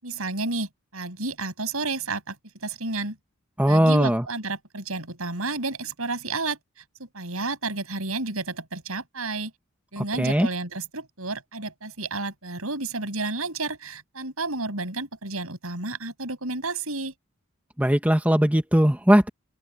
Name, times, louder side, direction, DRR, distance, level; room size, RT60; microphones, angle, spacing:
voice 1, 0.0-2.4 2.6-3.2 3.7-6.6 7.0-9.5 9.9-17.1, right 3 dB, 90° right, 7.5 m, -31 dB
voice 2, 3.6-4.2 10.0-10.5 17.8-19.3, equal, 5° right, 1.4 m, -19 dB
open air
head